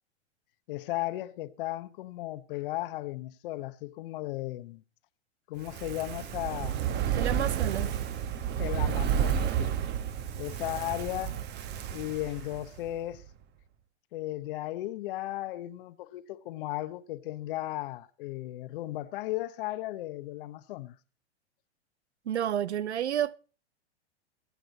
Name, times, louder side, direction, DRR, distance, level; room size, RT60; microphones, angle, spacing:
voice 1, 0.7-4.8 5.5-6.8 8.6-9.8 10.4-11.4 11.9-13.2 14.1-21.0, left 16 dB, 50° left, 1.0 m, -35 dB
Fire, 5.6-12.9 13.2-13.3, right 9 dB, 30° right, 1.3 m, -31 dB
voice 2, 7.2-7.9 22.3-23.4, right 10 dB, 75° right, 0.7 m, -30 dB
23.5 x 7.8 x 4.1 m
hypercardioid pair, 110°, 34 cm